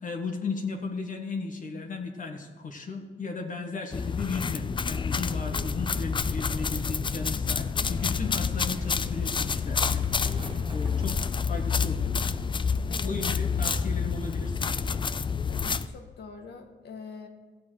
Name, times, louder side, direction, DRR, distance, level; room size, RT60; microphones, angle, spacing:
voice 1, 0.0-10.0 10.7-11.2 11.5-12.1 13.0-14.8, left 4 dB, 40° left, 3 dB, 1.5 m, -35 dB
sound 1, 3.9-15.9, left 5 dB, 25° left, 0.4 m, -28 dB
Skateboard, 6.7-13.8 14.1-14.6, right 2 dB, 25° right, 1.4 m, -52 dB
voice 2, 15.5-17.3, left 5 dB, 55° left, 4 dB, 1.8 m, -44 dB
15.0 x 8.3 x 4.7 m, 1.4 s
cardioid pair, 90°, 20 cm